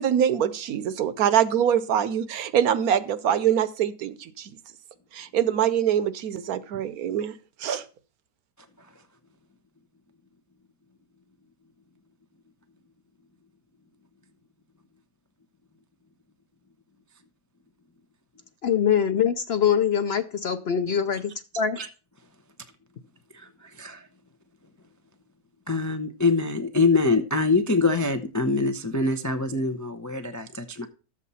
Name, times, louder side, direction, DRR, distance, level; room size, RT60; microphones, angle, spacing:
voice 1, 0.0-4.6 5.1-7.8, right 9 dB, 75° right, 1.2 m, -24 dB
voice 2, 18.6-21.8, left 8 dB, 55° left, 0.7 m, -23 dB
voice 3, 23.3-24.1 25.7-30.9, left 3 dB, 25° left, 0.4 m, -24 dB
12.5 x 7.5 x 4.1 m
omnidirectional pair, 1.6 m